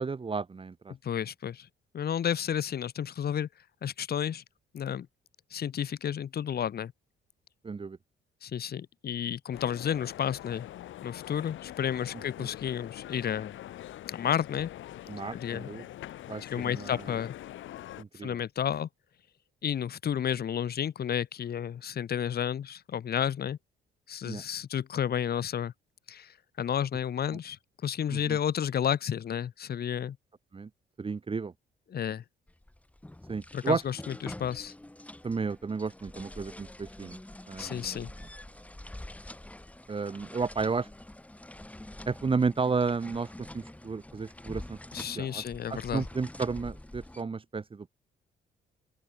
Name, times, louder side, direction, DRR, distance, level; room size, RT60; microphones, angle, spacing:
voice 1, 0.0-0.9 7.6-8.0 12.4-12.5 15.1-15.8 16.3-17.0 18.0-18.4 24.3-24.4 28.1-28.4 30.5-30.7 31.0-31.5 33.3-33.8 35.2-37.2 37.5-38.1 39.9-40.9 42.1-44.8 45.2-45.4 45.7-47.9, right 4 dB, 25° right, 1.2 m, -32 dB
voice 2, 1.0-1.7 1.9-3.5 3.8-4.4 4.7-5.1 5.5-6.9 8.4-10.7 11.0-13.6 14.1-14.7 15.3-15.7 16.4-17.4 18.2-18.9 19.6-23.6 24.1-25.7 26.1-30.2 31.9-32.2 33.5-34.7 37.6-38.1 44.9-46.1, left 9 dB, 50° left, 1.4 m, -31 dB
sound 1, 9.5-18.0, left 13 dB, 75° left, 1.4 m, -44 dB
sound 2, 32.5-47.2, left 1 dB, 5° left, 1.4 m, -46 dB
open air
cardioid pair, 90°, 20 cm